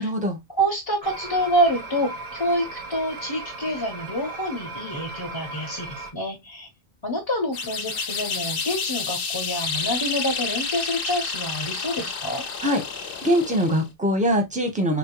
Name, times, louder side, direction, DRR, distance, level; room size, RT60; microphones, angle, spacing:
voice 1, 0.0-0.4 12.6-12.8 13.2-15.0, equal, 10° right, 0.7 m, -22 dB
voice 2, 0.6-6.7 7.0-12.4, equal, 30° left, 0.7 m, -27 dB
sound 1, 1.0-6.1, right 3 dB, 45° right, 0.6 m, -37 dB
sound 2, 7.5-13.9, left 5 dB, 60° left, 0.7 m, -30 dB
3.7 x 2.1 x 2.9 m
omnidirectional pair, 1.1 m